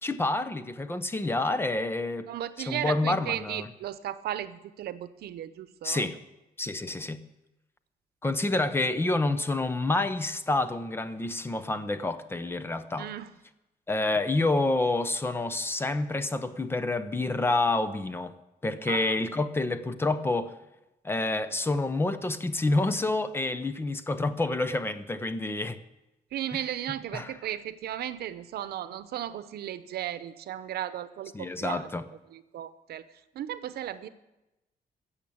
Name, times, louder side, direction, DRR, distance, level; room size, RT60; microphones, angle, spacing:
voice 1, 0.0-2.3 2.7-3.7 5.8-6.2 6.6-7.2 8.2-13.1 13.9-18.3 18.6-20.5 21.0-25.8 27.1-27.3 31.3-32.0, left 2 dB, 15° left, 12 dB, 0.6 m, -28 dB
voice 2, 2.3-6.1 13.0-13.3 18.9-19.2 26.3-31.9 32.3-33.0 33.3-34.1, right 11 dB, 85° right, 13 dB, 0.8 m, -35 dB
15.0 x 7.3 x 8.5 m, 0.97 s
cardioid pair, 170°, 16 cm